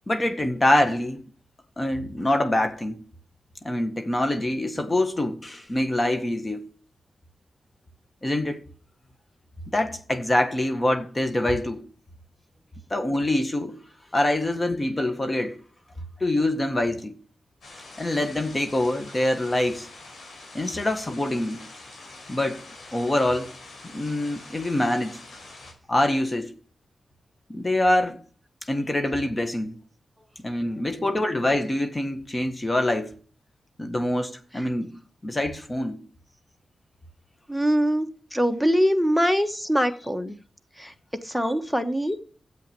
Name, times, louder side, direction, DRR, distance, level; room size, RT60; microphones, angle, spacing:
voice 1, 0.1-1.2 1.8-3.0 3.6-6.7 8.2-8.6 9.7-11.9 12.9-13.8 14.1-15.6 16.2-17.2 18.0-19.9 20.5-21.6 22.3-22.6 22.9-23.5 23.8-25.2 25.9-26.5 27.5-28.2 28.7-29.8 30.4-33.1 33.8-34.9 35.2-36.0, left 1 dB, 30° left, 1.6 m, -25 dB
sound 1, 17.6-25.7, left 2 dB, 75° left, 4.7 m, -45 dB
voice 2, 37.5-40.4 40.7-40.9 41.2-42.2, equal, 5° left, 1.4 m, -23 dB
9.1 x 7.9 x 7.0 m
cardioid pair, 55°, 0 cm